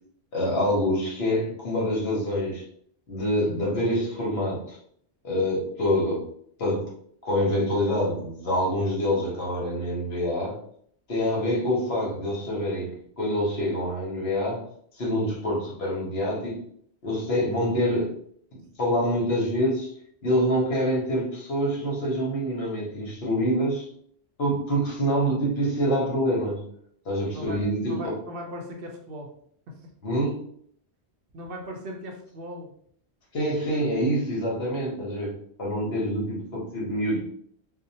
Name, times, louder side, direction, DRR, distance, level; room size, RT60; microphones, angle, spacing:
voice 1, 0.3-2.6 3.1-4.8 5.2-6.2 6.6-6.9 7.2-10.6 11.1-14.6 15.0-16.6 17.0-18.1 18.8-19.9 20.2-23.9 24.4-26.6 27.0-27.9 30.0-30.4 33.3-37.2, equal, 70° left, -4 dB, 1.2 m, -26 dB
voice 2, 27.9-29.3 29.7-29.9 31.3-32.7, equal, 65° right, 2 dB, 0.7 m, -38 dB
2.7 x 2.1 x 2.7 m, 0.64 s
omnidirectional pair, 1.1 m